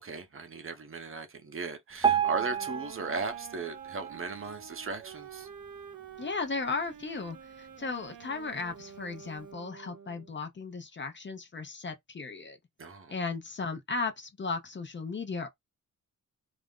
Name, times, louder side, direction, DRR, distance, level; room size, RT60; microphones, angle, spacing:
voice 1, 0.0-5.5 12.8-13.2, right 4 dB, 40° right, 0.7 m, -37 dB
Piano, 2.0-5.1 5.6-5.8 6.1-6.2 6.9-7.0 7.6-7.7, right 8 dB, 15° right, 0.4 m, -31 dB
sound 1, 2.2-10.4, right 8 dB, 80° right, 0.6 m, -49 dB
voice 2, 6.2-12.6 13.1-15.5, left 4 dB, 35° left, 0.6 m, -36 dB
2.5 x 2.0 x 3.5 m
cardioid pair, 85°, 33 cm